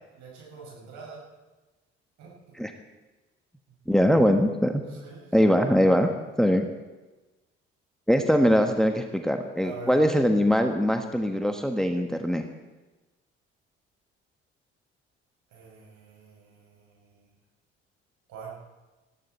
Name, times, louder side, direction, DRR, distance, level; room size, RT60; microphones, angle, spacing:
voice 1, 0.1-1.3 2.2-2.6 3.7-3.8 4.8-5.5 9.6-10.0 15.5-17.3 18.3-18.6, right 5 dB, 60° right, -3 dB, 6.6 m, -45 dB
voice 2, 3.9-4.8 5.3-6.1 6.4-6.7 8.1-12.4, equal, ahead, 6 dB, 1.4 m, -22 dB
20.0 x 14.0 x 4.4 m, 1.2 s
figure-of-eight pair, 45°, 33 cm